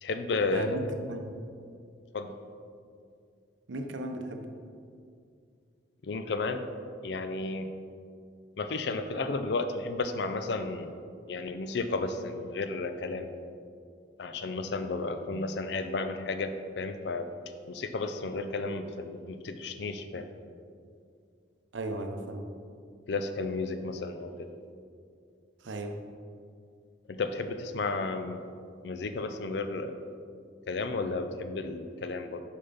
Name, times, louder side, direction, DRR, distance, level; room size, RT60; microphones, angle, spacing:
voice 1, 0.0-0.8 2.1-2.3 6.0-6.6 7.0-7.7 8.6-10.9 11.3-13.3 14.2-17.3 17.7-20.3 23.1-24.5 27.1-28.4 28.8-30.0 30.7-32.4, left 3 dB, 65° left, 8 dB, 0.4 m, -33 dB
voice 2, 0.5-1.3 3.7-4.4 21.7-22.5 25.6-26.0, right 1 dB, 80° right, 5 dB, 0.6 m, -35 dB
6.6 x 5.5 x 4.0 m, 2.3 s
head